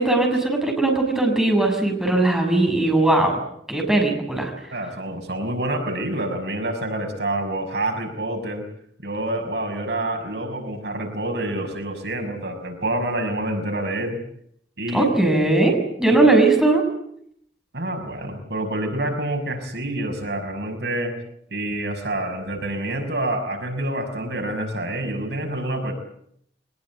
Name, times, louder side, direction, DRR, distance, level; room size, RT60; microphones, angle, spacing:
voice 1, 0.0-3.4 3.7-4.5 14.9-16.8, right 2 dB, 5° right, 1 dB, 6.6 m, -19 dB
voice 2, 4.7-8.6 9.0-14.2 14.8-15.1 17.7-21.2 21.5-25.9, right 1 dB, 70° right, 5 dB, 5.8 m, -27 dB
23.0 x 20.5 x 9.4 m, 0.71 s
head